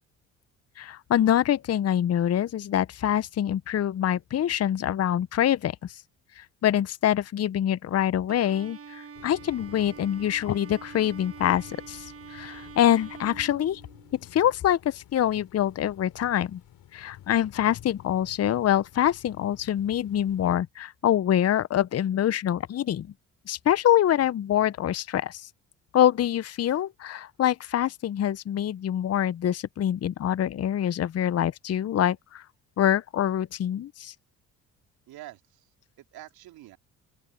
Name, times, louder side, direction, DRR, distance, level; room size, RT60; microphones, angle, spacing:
voice 1, 0.8-6.0 6.4-13.8 14.3-16.6 16.9-23.1 23.5-25.5 25.9-32.4 32.8-34.1, left 11 dB, 40° left, 0.7 m, -25 dB
Bowed string instrument, 8.3-14.2, right 6 dB, 35° right, 1.6 m, -45 dB
sound 1, 9.1-20.6, left 12 dB, 70° left, 5.1 m, -51 dB
voice 2, 35.1-36.8, right 15 dB, 75° right, 4.0 m, -47 dB
open air
hypercardioid pair, 60°, 37 cm